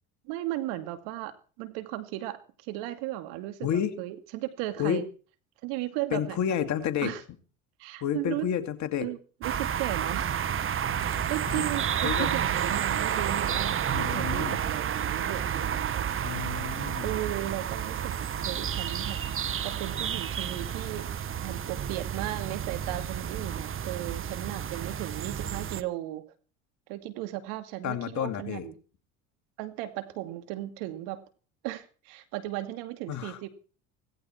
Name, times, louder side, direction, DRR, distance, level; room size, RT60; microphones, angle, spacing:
voice 1, 0.2-5.0 5.6-7.2 7.8-8.5 9.0-10.4 11.0-16.1 16.4-16.5 17.0-18.1 18.4-19.2 19.6-26.2 26.9-28.8 29.6-31.2 31.6-33.5, right 15 dB, 70° right, 9 dB, 2.5 m, -36 dB
voice 2, 3.6-3.9 4.8-5.0 6.1-7.1 8.0-9.1 11.5-11.6 12.0-12.3 13.9-14.6 16.2-17.1 27.8-28.6 33.1-33.4, left 9 dB, 50° left, 9 dB, 2.4 m, -30 dB
sound 1, 9.4-25.8, right 9 dB, 35° right, 1.3 m, -30 dB
17.5 x 16.0 x 4.6 m, 0.39 s
hypercardioid pair, 80°, 37 cm